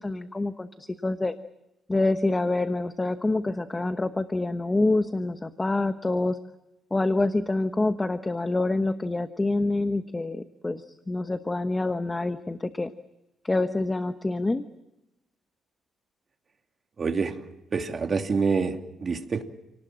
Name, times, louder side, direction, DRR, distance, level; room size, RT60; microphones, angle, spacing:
voice 1, 0.0-1.3 1.9-6.4 6.9-12.9 13.4-14.6, left 2 dB, 15° left, 9 dB, 1.1 m, -26 dB
voice 2, 17.0-17.4 17.7-19.4, right 5 dB, 35° right, 5 dB, 2.7 m, -26 dB
29.5 x 19.0 x 7.6 m, 0.94 s
cardioid pair, 140°, 0 cm